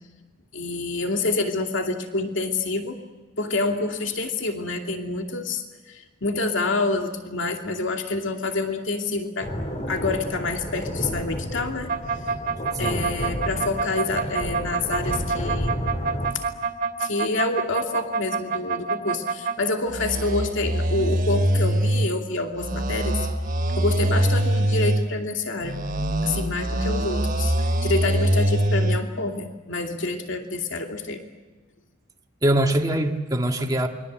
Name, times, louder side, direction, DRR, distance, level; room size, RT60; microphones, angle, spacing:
voice 1, 0.5-3.0 3.4-9.5 9.9-11.9 12.8-15.8 17.0-23.2 23.8-25.8 26.2-31.2, left 3 dB, 60° left, 3 dB, 2.7 m, -27 dB
sound 1, 9.4-16.3, equal, 35° left, 4.1 m, -31 dB
sound 2, 11.9-19.6 19.9-22.1 22.6-25.1 25.6-29.0, right 1 dB, 45° right, 2.7 m, -24 dB
voice 2, 32.4-33.9, right 1 dB, 20° right, 3 dB, 1.9 m, -23 dB
28.5 x 23.5 x 7.7 m, 1.2 s
head